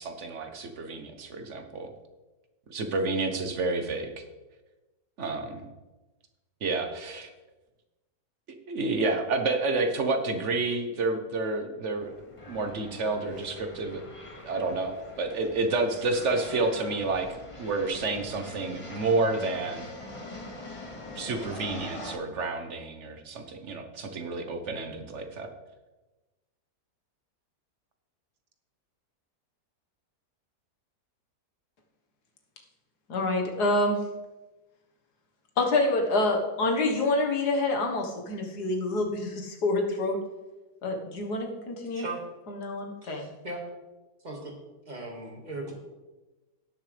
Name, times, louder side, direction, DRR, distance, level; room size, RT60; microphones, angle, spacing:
voice 1, 0.0-1.9 2.7-4.2 5.2-5.6 6.6-7.3 8.7-12.1 12.5-14.0 14.4-19.9 21.2-25.5, right 3 dB, 50° right, 5 dB, 1.3 m, -30 dB
sound 1, 12.0-22.1, left 2 dB, 20° left, 1.0 m, -43 dB
voice 2, 33.1-34.0 35.6-40.2 40.8-42.0 42.5-43.3, left 2 dB, 70° left, 2 dB, 2.0 m, -27 dB
voice 3, 41.9-42.2 43.0-43.6 44.2-44.5 44.9-45.7, right 2 dB, 25° right, -1 dB, 2.1 m, -38 dB
17.5 x 6.7 x 3.4 m, 1.1 s
omnidirectional pair, 1.8 m